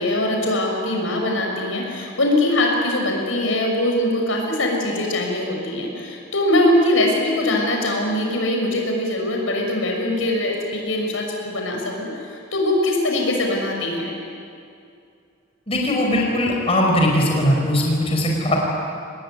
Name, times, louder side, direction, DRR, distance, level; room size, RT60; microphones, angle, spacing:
voice 1, 0.0-14.1, left 1 dB, 90° left, 0 dB, 6.3 m, -22 dB
voice 2, 15.7-18.6, left 1 dB, 30° left, -1 dB, 5.1 m, -19 dB
25.5 x 20.0 x 9.7 m, 2.4 s
head